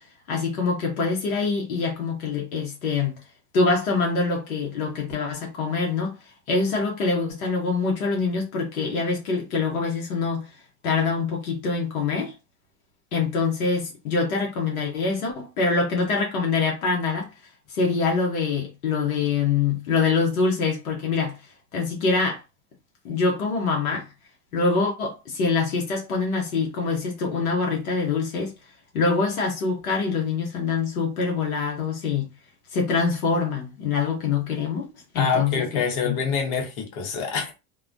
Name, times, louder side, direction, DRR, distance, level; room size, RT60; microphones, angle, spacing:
voice 1, 0.3-3.1 3.5-6.1 6.5-10.4 10.8-12.3 13.1-17.3 17.7-21.4 21.7-22.4 23.0-24.1 24.5-28.5 28.9-32.3 32.7-34.9 35.1-35.7 36.0-36.2, left 4 dB, 85° left, 0.9 m, -24 dB
voice 2, 35.1-37.5, left 5 dB, 55° left, 0.9 m, -26 dB
2.3 x 2.1 x 2.5 m
hypercardioid pair, 80°, 42 cm